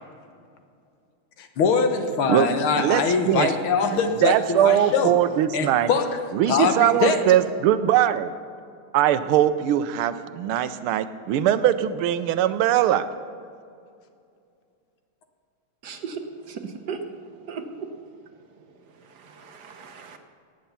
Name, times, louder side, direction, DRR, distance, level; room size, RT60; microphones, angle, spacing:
voice 1, 1.4-5.1 5.5-6.1 6.5-7.2, left 5 dB, 75° left, 6 dB, 1.9 m, -23 dB
voice 2, 2.8-3.5 3.9-5.9 6.3-8.3 8.9-13.0, right 11 dB, 90° right, 12 dB, 1.6 m, -21 dB
voice 3, 15.8-17.0 17.4-18.1 18.6-20.2, right 5 dB, 60° right, 6 dB, 1.3 m, -37 dB
18.0 x 8.1 x 5.6 m, 2.4 s
omnidirectional pair, 2.3 m